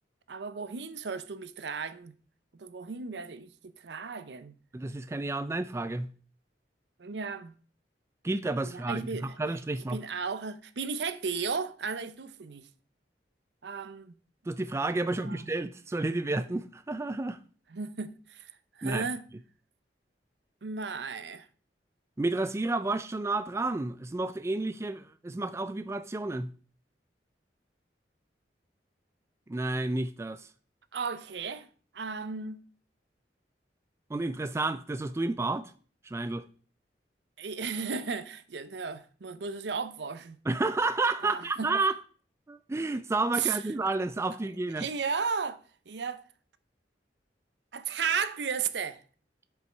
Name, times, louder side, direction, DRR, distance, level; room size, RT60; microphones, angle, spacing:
voice 1, 0.3-2.1 2.6-3.5 3.8-4.5 7.0-7.5 8.7-9.3 9.9-12.7 13.6-14.1 15.0-15.5 17.7-18.5 18.8-19.2 20.6-21.5 30.9-31.7 31.9-32.6 37.4-40.4 41.2-41.7 43.4-43.6 44.8-46.2 47.7-49.0, right 5 dB, 75° right, 0.6 m, -34 dB
voice 2, 4.7-6.1 8.2-10.0 14.5-17.4 18.8-19.1 22.2-26.5 29.5-30.5 34.1-35.7 36.0-36.5 40.5-41.9 42.5-44.9, right 2 dB, 15° right, 0.3 m, -31 dB
8.0 x 5.4 x 4.5 m
head